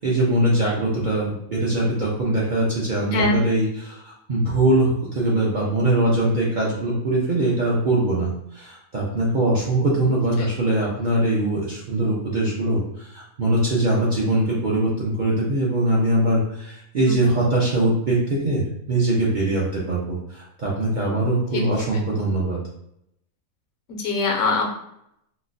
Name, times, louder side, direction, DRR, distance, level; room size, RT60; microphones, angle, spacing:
voice 1, 0.0-22.6, right 1 dB, 50° right, -5 dB, 0.6 m, -22 dB
voice 2, 3.1-3.4 17.1-17.3 21.5-21.6 24.0-24.7, left 3 dB, 75° left, 1 dB, 1.0 m, -22 dB
4.0 x 2.1 x 2.5 m, 0.76 s
omnidirectional pair, 1.5 m